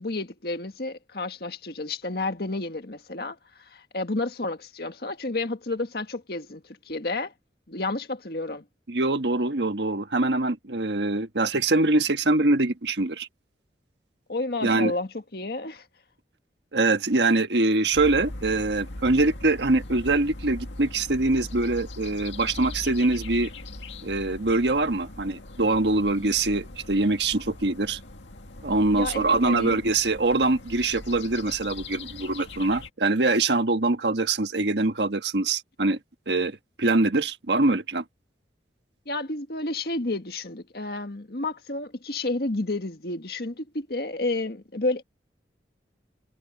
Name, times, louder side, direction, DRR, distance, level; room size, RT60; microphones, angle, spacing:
voice 1, 0.0-7.3 7.7-8.6 14.3-15.9 28.9-29.8 39.1-45.0, left 2 dB, 55° left, 1.8 m, -31 dB
voice 2, 8.9-13.3 14.6-14.9 16.7-23.5 24.0-28.0 28.6-36.0 36.3-38.0, right 2 dB, 70° right, 1.4 m, -23 dB
sound 1, 17.9-32.9, left 2 dB, 90° left, 2.1 m, -40 dB
head